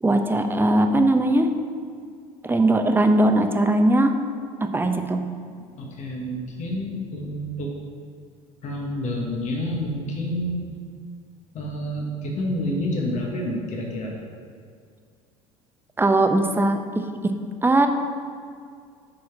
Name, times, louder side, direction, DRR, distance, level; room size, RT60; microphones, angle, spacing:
voice 1, 0.0-1.5 2.4-4.2 4.6-5.3 16.0-17.3 17.6-17.9, right 1 dB, 15° right, 6 dB, 0.8 m, -20 dB
voice 2, 5.8-7.7 8.6-10.6 11.5-14.1, equal, 45° left, -1 dB, 1.6 m, -28 dB
8.2 x 4.9 x 5.9 m, 2.2 s
hypercardioid pair, 75°, 17 cm